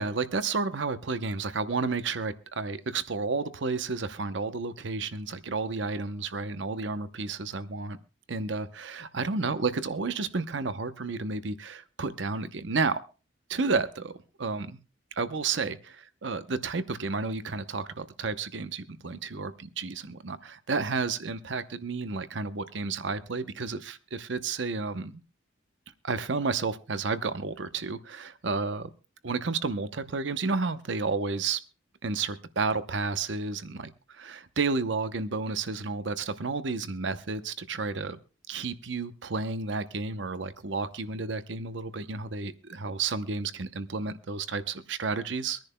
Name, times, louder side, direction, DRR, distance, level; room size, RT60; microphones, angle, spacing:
voice 1, 0.0-8.0 8.3-13.0 13.5-14.1 14.4-14.8 15.2-19.9 20.2-25.2 26.0-28.9 29.2-31.6 32.0-38.2 38.5-45.6, right 4 dB, 70° right, 12 dB, 0.8 m, -31 dB
24.5 x 10.5 x 2.2 m, 0.33 s
head